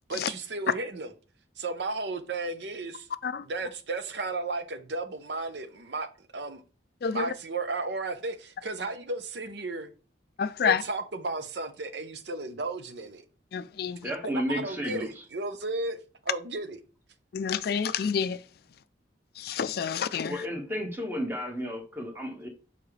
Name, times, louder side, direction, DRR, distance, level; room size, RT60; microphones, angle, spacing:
voice 1, 0.1-1.1 1.6-3.1 3.4-6.1 6.3-6.6 7.1-9.9 10.6-13.2 14.2-16.0 16.2-16.8, right 3 dB, 65° right, 0.8 m, -34 dB
voice 2, 10.4-10.8 13.5-14.0 17.3-18.4 19.4-20.4, left 6 dB, 55° left, 0.4 m, -28 dB
voice 3, 14.0-15.2 20.3-22.5, equal, 10° right, 1.3 m, -32 dB
7.1 x 4.9 x 3.3 m
head